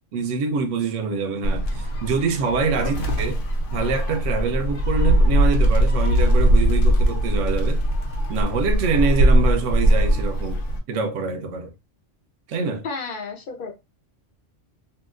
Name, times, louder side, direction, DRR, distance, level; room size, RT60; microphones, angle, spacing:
voice 1, 0.1-3.4 3.7-7.8 8.3-10.6 10.9-11.7 12.5-12.8, right 4 dB, 85° right, 0.9 m, -25 dB
Gull seagull, 1.4-10.8, right 1 dB, 85° left, 1.0 m, -20 dB
voice 2, 12.8-13.7, left 4 dB, 50° left, 0.8 m, -32 dB
2.9 x 2.8 x 2.4 m
omnidirectional pair, 1.2 m